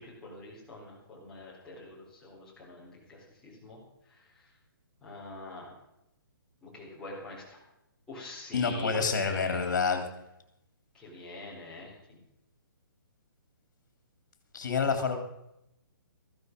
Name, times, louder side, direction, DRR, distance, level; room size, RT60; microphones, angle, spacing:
voice 1, 0.0-3.8 5.0-5.7 6.6-7.6 8.1-9.7 10.9-12.2, left 2 dB, 5° left, -7 dB, 4.1 m, -45 dB
voice 2, 8.5-10.0 14.5-15.1, left 5 dB, 55° left, 6 dB, 3.5 m, -28 dB
15.5 x 12.5 x 5.4 m, 0.85 s
hypercardioid pair, 175°, 12 cm